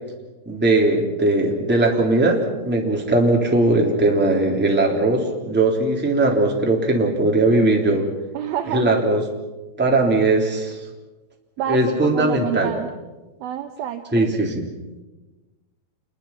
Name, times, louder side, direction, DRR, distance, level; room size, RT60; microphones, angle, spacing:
voice 1, 0.4-8.0 8.7-9.2 9.8-10.8 11.7-12.7 14.1-14.6, right 2 dB, 5° right, 0 dB, 2.1 m, -19 dB
voice 2, 8.3-9.0 11.6-12.9 13.4-14.3, right 10 dB, 85° right, 6 dB, 2.1 m, -28 dB
28.5 x 23.0 x 5.9 m, 1.1 s
omnidirectional pair, 5.7 m